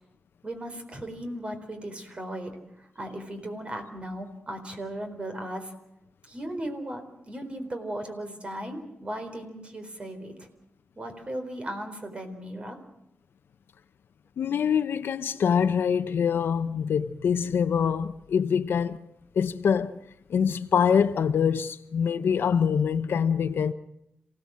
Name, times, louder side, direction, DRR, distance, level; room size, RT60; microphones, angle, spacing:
voice 1, 0.4-5.7 6.2-10.5 11.0-12.8, right 1 dB, 30° right, 4.2 m, -37 dB
voice 2, 14.4-19.0 19.4-20.0 20.3-23.7, left 7 dB, 90° left, 0.8 m, -24 dB
27.5 x 17.5 x 7.5 m
wide cardioid pair, 125°, 4 cm